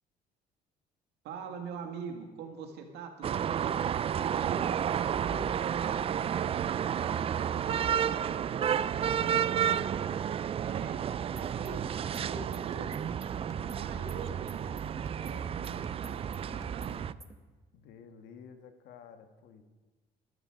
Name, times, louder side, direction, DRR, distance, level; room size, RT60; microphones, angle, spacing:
voice 1, 1.2-3.8 4.2-4.7 5.1-6.6 6.9-9.9 10.6-13.2 13.5-14.6 15.1-17.0, right 5 dB, 85° right, 4 dB, 2.1 m, -45 dB
sound 1, 3.2-17.1, right 9 dB, 35° right, 0.4 m, -31 dB
sound 2, 11.2-17.4, right 3 dB, 20° right, 1.1 m, -46 dB
voice 2, 15.0-15.9 17.7-19.6, left 6 dB, 80° left, 7 dB, 1.4 m, -53 dB
13.5 x 13.5 x 5.1 m, 1.3 s
cardioid pair, 110°, 17 cm